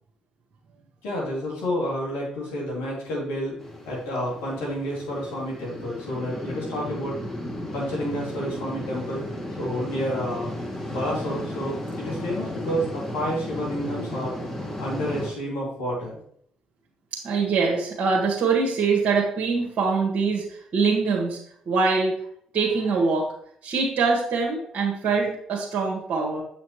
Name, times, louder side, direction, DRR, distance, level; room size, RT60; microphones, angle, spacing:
voice 1, 1.0-3.6 3.9-7.2 7.7-9.2 9.6-10.5 10.9-14.4 14.8-16.2, equal, 75° left, -4 dB, 2.8 m, -29 dB
sound 1, 3.6-15.3, left 1 dB, 15° left, 2.4 m, -34 dB
voice 2, 17.1-21.4 21.7-22.1 22.5-23.3 23.6-26.4, right 4 dB, 55° right, -3 dB, 1.4 m, -23 dB
7.2 x 6.0 x 3.1 m, 0.67 s
hypercardioid pair, 45°, 3 cm